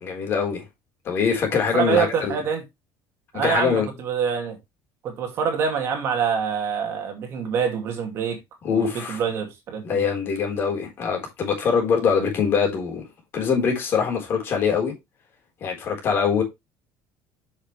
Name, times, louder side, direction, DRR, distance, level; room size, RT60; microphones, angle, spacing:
voice 1, 0.0-0.6 1.0-2.4 3.4-3.9 8.6-9.2 9.8-13.0 13.3-14.9 15.6-16.4, left 6 dB, 35° left, 4.0 m, -23 dB
voice 2, 1.7-2.6 3.3-4.6 5.0-8.4 8.7-10.0, right 7 dB, 40° right, 2.4 m, -25 dB
8.7 x 6.5 x 3.2 m
cardioid pair, 165°, 7 cm